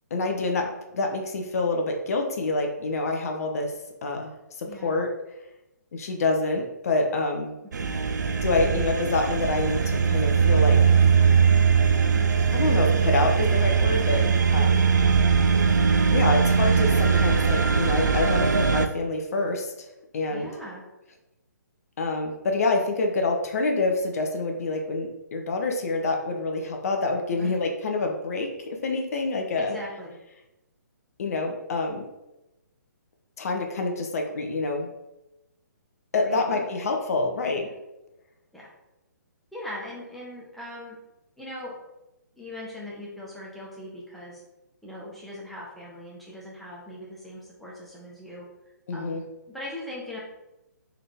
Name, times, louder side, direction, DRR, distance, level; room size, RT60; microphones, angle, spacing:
voice 1, 0.1-3.7 4.0-5.1 5.9-7.6 8.4-10.8 12.5-14.3 14.5-14.8 16.1-19.7 20.1-20.5 22.0-29.8 31.2-32.1 33.4-34.9 36.1-37.6 48.9-49.2, left 3 dB, 55° left, 3 dB, 0.7 m, -27 dB
voice 2, 4.7-5.0 7.8-7.9 20.3-20.8 27.3-27.6 29.6-30.2 36.2-36.7 37.6-37.7 38.5-38.7 39.5-41.0 41.4-41.8 42.4-44.4 44.8-48.4 48.9-50.2, left 1 dB, ahead, -6 dB, 1.0 m, -40 dB
sound 1, 7.7-18.9, right 6 dB, 70° right, 0.4 m, -21 dB
3.8 x 3.4 x 3.5 m, 0.95 s
figure-of-eight pair, 135°, 10 cm